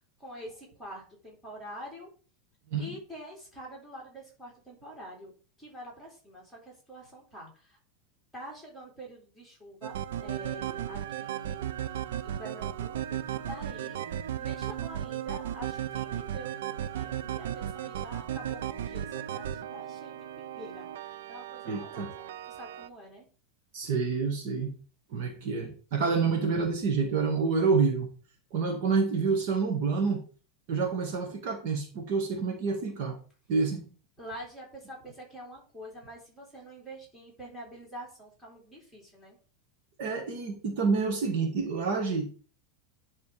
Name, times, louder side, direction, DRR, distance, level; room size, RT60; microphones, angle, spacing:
voice 1, 0.2-2.1 2.8-5.3 5.6-7.8 8.3-14.0 14.4-23.3 34.2-39.4, equal, ahead, 2.9 m, -46 dB
sound 1, 9.8-22.9, right 10 dB, 80° right, 0.5 m, -36 dB
voice 2, 21.7-22.1 23.7-24.7 25.1-28.1 28.5-30.2 30.7-33.2 33.5-33.8 40.0-42.3, right 4 dB, 45° right, 1.6 m, -28 dB
10.5 x 3.6 x 4.9 m
supercardioid pair, 175°, 0 cm